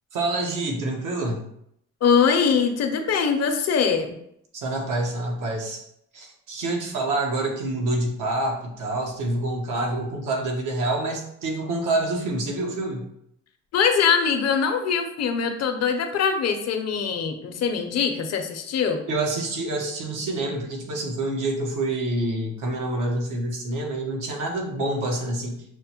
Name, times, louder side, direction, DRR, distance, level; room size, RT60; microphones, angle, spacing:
voice 1, 0.1-1.4 4.5-5.8 6.1-13.1 19.1-25.6, right 2 dB, 90° right, 1 dB, 1.0 m, -27 dB
voice 2, 2.0-4.2 13.7-19.0, left 6 dB, 60° left, 6 dB, 0.6 m, -22 dB
6.2 x 2.1 x 2.8 m, 0.74 s
cardioid pair, 90°, 30 cm